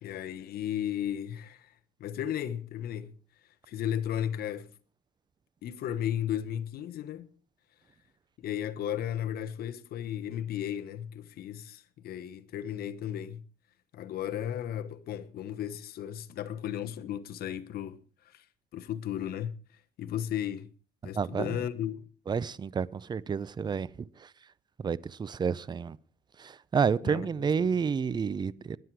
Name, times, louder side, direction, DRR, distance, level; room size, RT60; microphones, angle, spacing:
voice 1, 0.0-1.7 2.0-3.1 3.7-4.7 5.6-7.3 8.4-13.4 13.9-18.0 18.2-18.4 18.7-19.5 20.0-20.7 21.0-22.1 27.0-27.2 27.6-27.7, left 10 dB, 65° left, 1.2 m, -34 dB
voice 2, 22.3-24.3 24.8-26.0 26.4-28.8, right 6 dB, 25° right, 0.5 m, -30 dB
21.0 x 7.6 x 4.7 m
cardioid pair, 110°, 17 cm